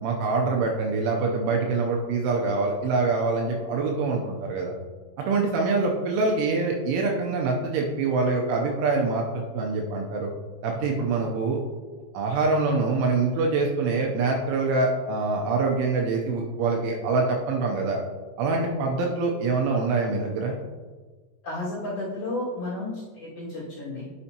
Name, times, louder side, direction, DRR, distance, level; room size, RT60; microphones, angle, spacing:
voice 1, 0.0-4.7 5.3-10.3 10.6-11.6 12.1-18.0 18.4-20.6, right 3 dB, 80° right, 0 dB, 3.0 m, -25 dB
voice 2, 21.4-24.1, left 2 dB, 50° left, -8 dB, 2.9 m, -32 dB
9.7 x 6.8 x 2.9 m, 1.3 s
omnidirectional pair, 5.9 m